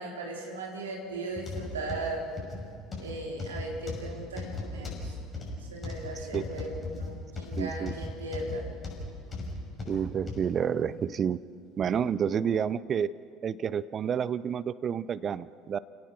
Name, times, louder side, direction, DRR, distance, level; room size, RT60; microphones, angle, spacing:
voice 1, 0.0-2.3 3.0-5.2 5.7-8.7, right 2 dB, 75° right, 0 dB, 3.4 m, -37 dB
sound 1, 1.4-10.5 11.0-11.2 11.8-11.9, left 3 dB, 25° left, 6.0 m, -37 dB
voice 2, 7.6-7.9 9.9-11.4 11.8-13.1 13.4-15.8, right 8 dB, 35° right, 18 dB, 0.5 m, -29 dB
29.5 x 17.5 x 6.1 m, 2.4 s
figure-of-eight pair, 65°, 0 cm